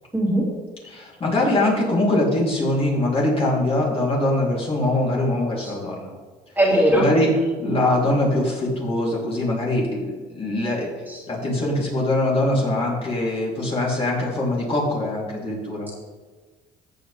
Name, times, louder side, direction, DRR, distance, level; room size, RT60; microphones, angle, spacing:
voice 1, 0.1-0.4 5.6-5.7 6.6-7.1 11.1-11.2, right 1 dB, 10° right, -3 dB, 2.7 m, -19 dB
voice 2, 0.8-6.1 6.9-10.9 11.3-15.9, left 1 dB, 35° left, -4 dB, 3.5 m, -22 dB
14.0 x 7.7 x 3.5 m, 1.4 s
cardioid pair, 110°, 17 cm